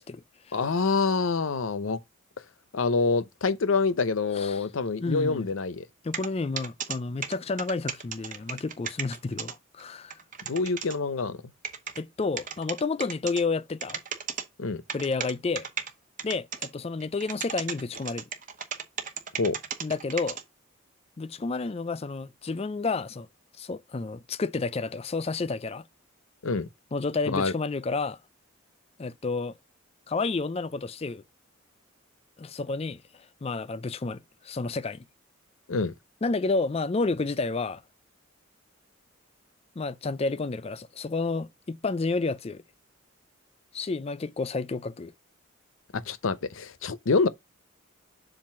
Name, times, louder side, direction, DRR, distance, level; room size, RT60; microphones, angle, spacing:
voice 1, 0.0-0.6 4.3-4.6 5.0-5.5 6.0-10.2 12.0-14.0 14.9-15.7 16.2-18.3 19.8-20.4 21.2-23.3 23.6-25.8 26.9-28.2 29.0-29.6 30.1-31.2 32.4-35.0 36.2-37.8 39.8-42.6 43.7-45.1, left 3 dB, 30° left, 0.4 m, -30 dB
voice 2, 0.5-2.0 2.7-5.9 10.4-11.4 14.6-14.8 19.4-19.6 26.4-26.7 27.3-27.5 35.7-35.9 45.9-47.3, left 4 dB, 75° left, 0.6 m, -26 dB
sound 1, 6.1-6.3 6.6-7.0 7.2-9.5 9.8-9.9 10.1-10.9 11.6-12.0 12.4-13.4 13.8-14.4 14.9-15.9 16.2-16.7 17.0-20.4, right 7 dB, 40° right, 0.9 m, -34 dB
7.4 x 2.6 x 5.8 m
head